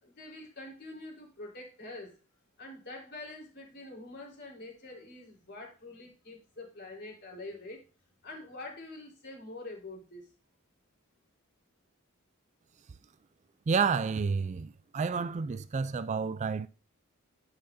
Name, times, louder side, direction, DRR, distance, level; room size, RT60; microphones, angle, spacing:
voice 1, 0.0-2.1 2.6-7.8 8.2-10.3, left 2 dB, 55° left, 4.0 m, -45 dB
voice 2, 13.7-16.7, right 5 dB, 35° right, 0.3 m, -30 dB
10.0 x 8.9 x 2.7 m
head